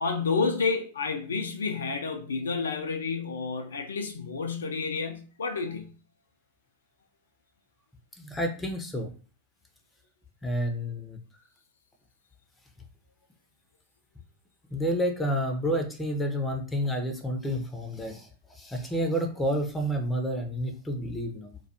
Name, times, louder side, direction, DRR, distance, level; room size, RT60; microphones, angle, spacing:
voice 1, 0.0-5.9, left 4 dB, 70° left, 0.3 m, -30 dB
voice 2, 8.2-9.1 10.4-11.2 14.7-21.6, equal, 10° left, 0.5 m, -30 dB
2.2 x 2.2 x 2.8 m
figure-of-eight pair, 90°, 0 cm